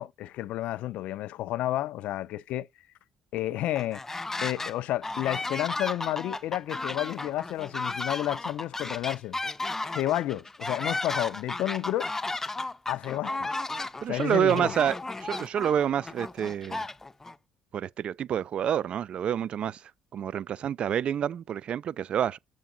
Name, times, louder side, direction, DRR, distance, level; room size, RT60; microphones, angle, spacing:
voice 1, 0.0-2.7 3.3-4.0 4.4-9.4 9.8-12.1 12.9-13.5 14.1-14.8, left 14 dB, 80° left, 0.4 m, -31 dB
sound 1, 3.8-4.7 5.0-17.3, left 2 dB, 20° left, 0.5 m, -34 dB
voice 2, 14.0-16.8 17.7-19.8 20.1-22.4, right 9 dB, 60° right, 0.3 m, -28 dB
7.2 x 4.5 x 3.8 m
cardioid pair, 80°, 2 cm